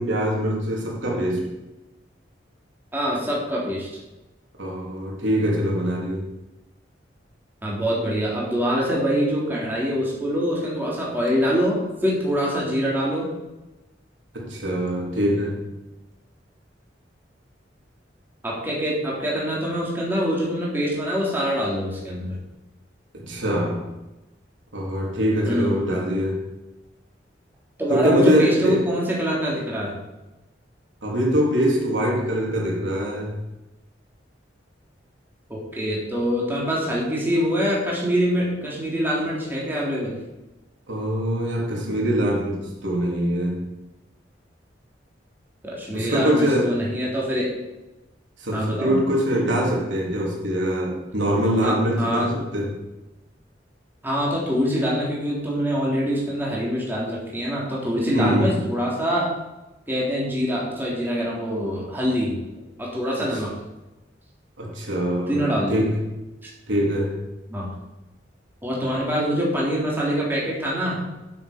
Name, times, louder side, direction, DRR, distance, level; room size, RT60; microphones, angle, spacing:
voice 1, 0.0-1.5 4.6-6.3 14.3-15.6 23.1-23.9 24.7-26.4 27.9-28.9 31.0-33.4 40.9-43.8 45.9-46.9 48.4-52.8 58.1-58.6 63.2-63.4 64.6-66.0 66.7-67.3, equal, 90° right, -2 dB, 3.3 m, -23 dB
voice 2, 2.9-3.9 7.6-13.3 18.4-22.4 25.5-25.8 27.8-30.0 35.5-40.2 45.6-47.5 48.5-49.0 51.6-52.3 54.0-59.3 59.9-62.4 62.8-63.5 65.3-65.8 67.5-67.7 68.6-71.0, equal, 10° right, -5 dB, 3.5 m, -24 dB
12.0 x 7.5 x 5.2 m, 1.0 s
head